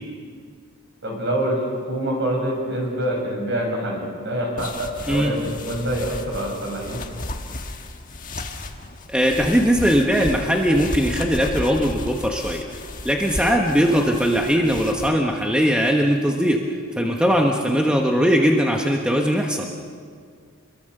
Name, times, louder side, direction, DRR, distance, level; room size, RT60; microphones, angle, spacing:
voice 1, 1.0-1.6 1.9-7.0, right 1 dB, 50° right, 0 dB, 7.5 m, -26 dB
sound 1, 4.6-15.1, left 2 dB, 35° left, 1.6 m, -34 dB
voice 2, 9.1-12.6 13.0-16.6 17.0-19.7, equal, 5° right, 1 dB, 1.2 m, -20 dB
28.5 x 23.0 x 6.7 m, 2.1 s
head